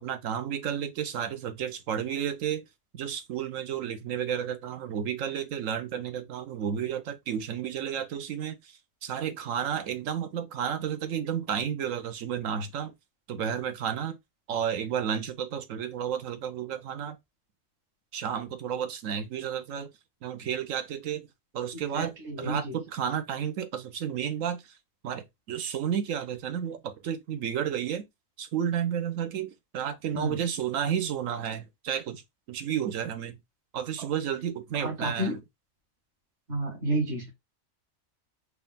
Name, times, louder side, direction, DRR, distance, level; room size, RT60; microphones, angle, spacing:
voice 1, 0.0-2.6 2.9-12.9 13.3-14.2 14.5-17.2 18.1-19.9 20.2-21.3 21.5-24.8 25.0-28.0 28.4-32.2 32.5-33.4 33.7-35.4, right 8 dB, 75° right, 1.1 m, -32 dB
voice 2, 22.0-22.7 30.1-30.4 34.8-35.4 36.5-37.3, right 1 dB, 60° right, 1.9 m, -30 dB
4.7 x 2.5 x 3.5 m
omnidirectional pair, 1.4 m